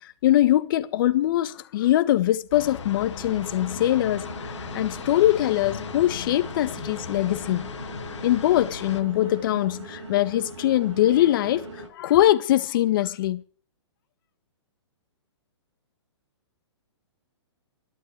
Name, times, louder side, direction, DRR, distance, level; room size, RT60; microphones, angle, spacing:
voice 1, 0.0-7.7 8.2-13.4, left 13 dB, 45° left, 1.5 m, -22 dB
sound 1, 2.5-9.0, left 6 dB, 80° left, 2.1 m, -37 dB
sound 2, 3.2-11.9, right 2 dB, 80° right, 6.7 m, -40 dB
12.5 x 12.0 x 8.3 m
hypercardioid pair, 145°, 15 cm